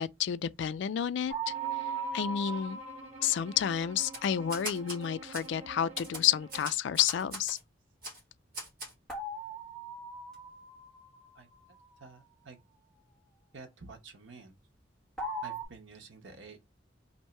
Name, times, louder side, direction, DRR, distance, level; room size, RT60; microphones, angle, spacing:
voice 1, 0.0-1.5 2.1-2.8 3.2-7.6, left 9 dB, 70° left, 0.3 m, -30 dB
sound 1, 1.3-4.3 9.1-11.3 15.2-15.6, right 3 dB, 5° left, 1.3 m, -39 dB
Bowed string instrument, 1.4-6.9, right 4 dB, 35° right, 1.1 m, -49 dB
Typewriter, 4.0-5.0 5.3-5.5 6.0-7.6 8.0-8.2 8.5-8.9, right 1 dB, 50° right, 1.4 m, -40 dB
voice 2, 12.0-12.6 13.5-14.6 15.4-16.6, right 4 dB, 90° right, 1.0 m, -50 dB
3.0 x 2.6 x 4.4 m
head